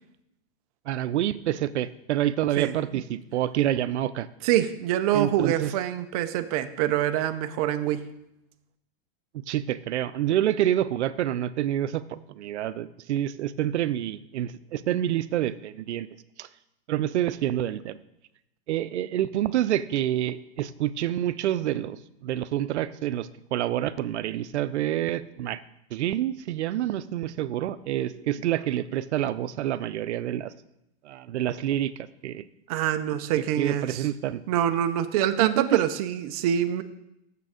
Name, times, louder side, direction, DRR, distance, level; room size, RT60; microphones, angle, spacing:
voice 1, 0.9-4.3 5.1-5.7 9.5-16.1 16.4-16.5 16.9-18.0 18.7-25.6 25.9-30.5 31.0-32.4 33.6-34.4 35.4-35.8, right 12 dB, 90° right, 16 dB, 0.6 m, -27 dB
voice 2, 2.6-3.0 4.4-8.0 28.0-28.2 32.7-34.1 34.5-36.8, right 11 dB, 35° right, 10 dB, 0.5 m, -25 dB
7.1 x 6.7 x 5.0 m, 0.83 s
supercardioid pair, 155°, 33 cm